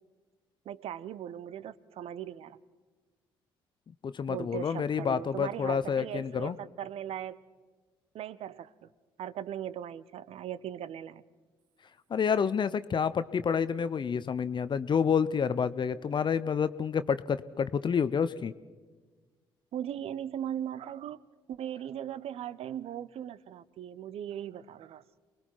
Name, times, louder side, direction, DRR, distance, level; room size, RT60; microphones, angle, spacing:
voice 1, 0.7-2.6 4.3-7.4 8.1-8.9 9.2-11.2 19.7-21.2 21.5-25.0, right 10 dB, 60° right, 18 dB, 0.7 m, -39 dB
voice 2, 4.0-6.6 12.1-18.5, left 6 dB, 40° left, 14 dB, 0.7 m, -29 dB
28.5 x 20.5 x 4.7 m, 1.4 s
hypercardioid pair, 45°, 12 cm